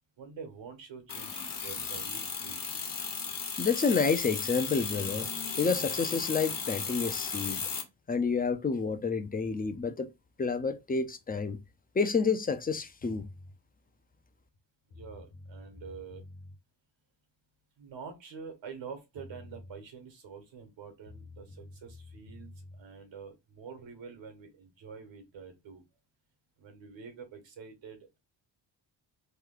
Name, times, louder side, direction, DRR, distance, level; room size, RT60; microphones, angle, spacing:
voice 1, 0.2-2.7 14.9-16.2 17.8-25.8 26.6-28.2, right 6 dB, 80° right, 1.2 m, -47 dB
sound 1, 1.1-7.8, left 5 dB, 50° left, 1.1 m, -35 dB
voice 2, 3.6-5.3 5.6-7.6 8.1-10.1 10.4-11.6 11.9-13.3, left 5 dB, 20° left, 0.4 m, -29 dB
sound 2, 13.0-13.5 14.5-14.6 14.9-16.6 18.8-18.9 19.1-19.8 21.0-22.8, left 2 dB, 80° left, 1.2 m, -49 dB
3.1 x 2.2 x 3.7 m
cardioid pair, 85°, 44 cm